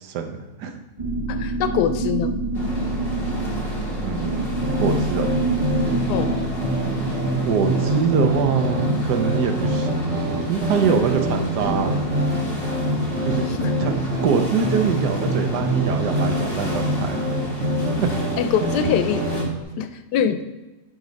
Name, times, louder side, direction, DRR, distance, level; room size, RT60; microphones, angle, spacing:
voice 1, 0.0-0.8 4.0-4.5 4.8-5.3 7.4-12.0 13.3-13.5 13.8-13.9 14.2-17.4 18.0-18.1, right 6 dB, 80° right, 5 dB, 1.3 m, -24 dB
sound 1, 1.0-8.9, right 2 dB, 35° right, 0.7 m, -27 dB
voice 2, 1.3-2.4 6.1-6.4 13.5-13.7 18.4-19.2 19.8-20.4, left 9 dB, 90° left, 9 dB, 1.2 m, -23 dB
sound 2, 2.5-19.4, right 1 dB, 40° left, 1.5 m, -31 dB
sound 3, 4.6-19.6, right 1 dB, 50° right, 1.3 m, -25 dB
9.0 x 3.1 x 5.1 m, 1.1 s
omnidirectional pair, 1.7 m